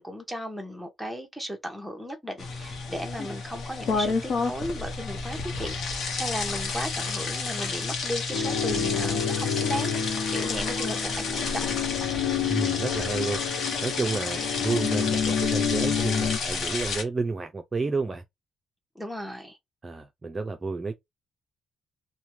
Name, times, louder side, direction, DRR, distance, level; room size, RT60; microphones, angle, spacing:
voice 1, 0.0-9.9 10.3-11.8 18.9-19.6, equal, ahead, 0.9 m, -35 dB
sound 1, 2.4-17.0, left 4 dB, 65° left, 0.9 m, -31 dB
sound 2, 8.3-16.4, left 7 dB, 90° left, 0.5 m, -29 dB
voice 2, 12.5-13.4 13.8-18.2 19.8-20.9, right 3 dB, 30° right, 0.5 m, -30 dB
2.7 x 2.2 x 3.0 m
cardioid pair, 90°, 0 cm